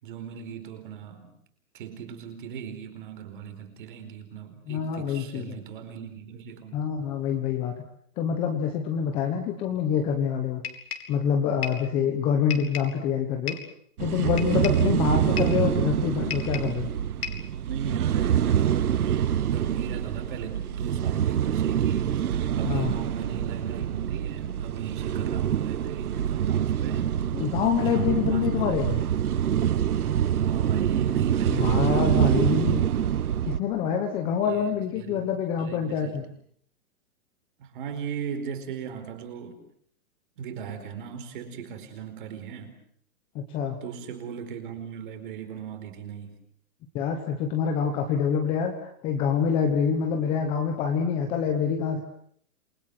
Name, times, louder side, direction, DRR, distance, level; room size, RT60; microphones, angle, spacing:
voice 1, 0.0-1.3 1.7-6.8 17.7-22.2 22.6-27.1 27.9-28.8 30.4-32.5 34.4-35.3 35.6-36.2 37.6-39.6 40.4-42.7 43.8-46.3, right 7 dB, 35° right, 7 dB, 4.7 m, -38 dB
voice 2, 4.7-5.6 6.7-7.7 8.2-10.6 11.1-13.6 14.0-16.9 22.6-22.9 27.3-29.0 31.5-32.8 33.4-36.2 43.3-43.8 46.9-52.0, left 7 dB, 10° left, 5 dB, 1.2 m, -26 dB
sound 1, 10.6-11.2 11.6-11.9 12.5-13.0 13.5-13.8 14.4-14.9 15.4-15.6 16.3-16.8 17.2-17.5, left 7 dB, 85° left, 4.4 m, -35 dB
sound 2, 14.0-33.6, right 9 dB, 80° right, 1.4 m, -25 dB
28.0 x 22.5 x 7.9 m, 0.63 s
hypercardioid pair, 175°, 44 cm